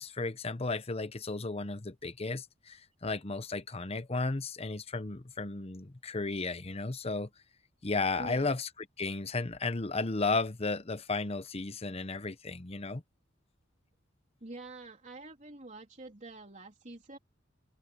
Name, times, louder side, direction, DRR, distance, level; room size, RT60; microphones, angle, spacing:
voice 1, 0.0-7.3 7.8-8.7 9.0-13.0, left 3 dB, 30° left, 0.9 m, -34 dB
voice 2, 8.2-8.6 14.4-17.2, right 2 dB, 40° right, 3.5 m, -46 dB
head